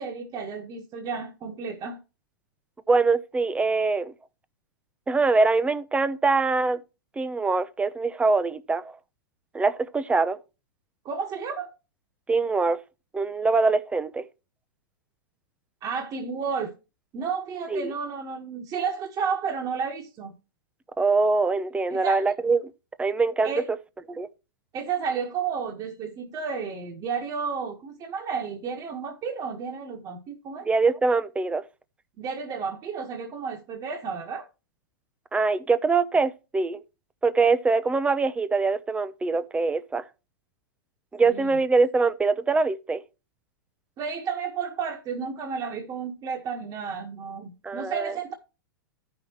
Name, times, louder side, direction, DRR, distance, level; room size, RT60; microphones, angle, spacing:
voice 1, 0.0-2.0 11.0-11.7 15.8-16.7 17.1-20.3 21.9-22.2 23.4-23.7 24.7-30.8 32.2-34.4 41.2-41.5 44.0-48.3, right 6 dB, 30° right, 1.5 m, -32 dB
voice 2, 2.9-4.1 5.1-6.8 7.2-8.9 9.5-10.4 12.3-12.8 13.1-14.3 17.7-17.9 21.0-22.6 23.0-23.5 24.1-24.3 30.7-31.6 35.3-36.8 37.2-40.0 41.1-43.0 47.6-48.2, right 4 dB, 10° right, 0.8 m, -23 dB
14.0 x 5.8 x 3.1 m
hypercardioid pair, 115°, 11 cm